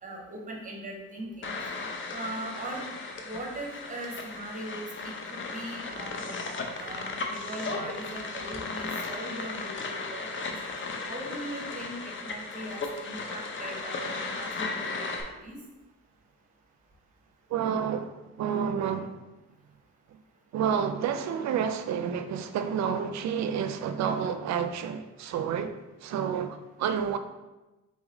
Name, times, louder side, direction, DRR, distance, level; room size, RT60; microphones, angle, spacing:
voice 1, 0.0-1.5 2.1-2.9 3.2-6.4 6.8-10.5 11.1-14.9 15.2-15.6, right 1 dB, 25° right, 0 dB, 1.1 m, -40 dB
sound 1, 1.4-15.2, left 3 dB, 40° left, 0.6 m, -36 dB
voice 2, 17.5-19.2 20.5-25.7 26.0-27.2, right 7 dB, 65° right, 9 dB, 0.5 m, -29 dB
4.1 x 3.0 x 3.8 m, 1.1 s
cardioid pair, 90°, 30 cm